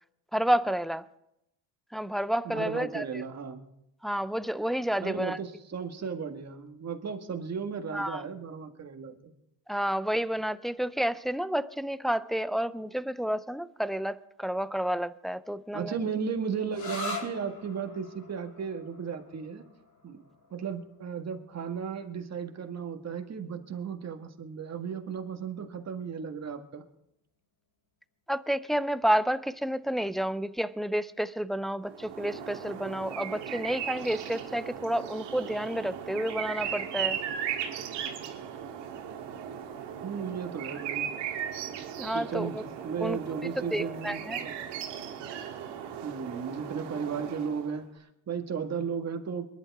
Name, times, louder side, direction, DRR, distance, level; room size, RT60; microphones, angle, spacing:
voice 1, 0.3-1.1 1.9-3.2 4.0-5.4 7.9-8.2 9.7-16.0 28.3-37.2 41.9-42.6 43.0-44.5, equal, ahead, 0.4 m, -30 dB
voice 2, 2.4-3.7 5.0-9.3 15.7-19.6 20.0-20.2 20.5-26.8 40.0-41.1 42.1-42.6 42.8-44.5 46.0-49.5, right 6 dB, 35° right, 1.8 m, -35 dB
sound 1, 16.7-24.1, left 2 dB, 55° left, 7.4 m, -44 dB
sound 2, 31.9-47.8, right 9 dB, 75° right, 1.9 m, -37 dB
22.5 x 11.0 x 3.6 m
supercardioid pair, 80°, 43 cm